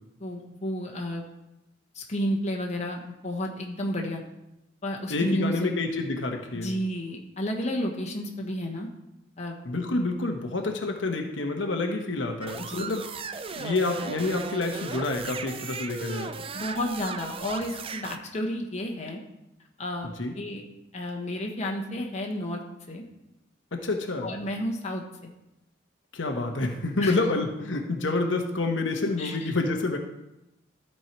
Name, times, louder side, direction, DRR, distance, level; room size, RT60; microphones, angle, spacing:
voice 1, 0.2-1.2 1.9-4.2 4.8-5.7 6.5-8.9 9.4-9.6 12.7-12.8 16.5-19.2 19.8-20.6 20.9-22.6 22.9-23.0 24.2-25.3 27.0-27.2 29.2-29.5, equal, 40° left, 0 dB, 1.3 m, -31 dB
voice 2, 5.1-6.7 9.6-13.0 13.6-16.3 20.2-20.3 23.7-24.3 26.1-30.0, left 2 dB, 85° left, 3 dB, 1.1 m, -28 dB
sound 1, 12.4-18.2, right 5 dB, 30° right, 0.4 m, -37 dB
13.5 x 4.6 x 4.5 m, 0.90 s
head